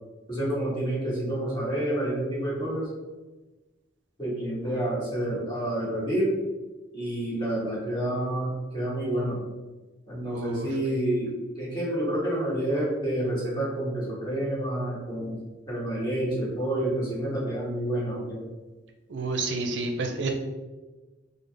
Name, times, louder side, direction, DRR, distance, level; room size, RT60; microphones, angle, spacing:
voice 1, 0.3-2.9 4.2-6.3 6.9-9.4 10.1-15.4 15.7-18.4, right 1 dB, 25° left, -7 dB, 1.4 m, -28 dB
voice 2, 10.3-10.7 19.1-20.3, right 3 dB, 65° right, 4 dB, 0.5 m, -29 dB
5.2 x 2.0 x 3.3 m, 1.2 s
head